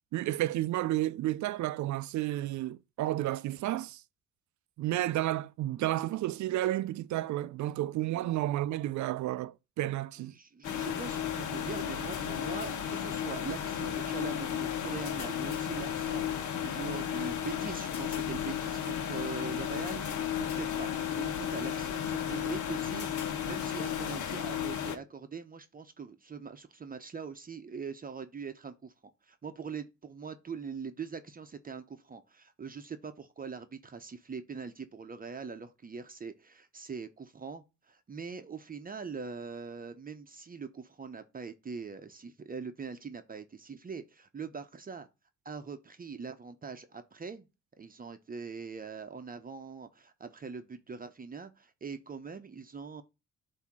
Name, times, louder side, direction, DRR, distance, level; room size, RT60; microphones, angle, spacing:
voice 1, 0.1-4.0 4.8-10.3, right 15 dB, 70° right, 0.4 m, -31 dB
voice 2, 10.3-20.0 20.6-28.9 29.2-45.1 45.4-47.5 47.8-53.0, right 5 dB, 30° right, 0.7 m, -42 dB
sound 1, 10.6-25.0, left 9 dB, 75° left, 1.1 m, -34 dB
8.1 x 2.8 x 6.0 m
cardioid pair, 90°, 30 cm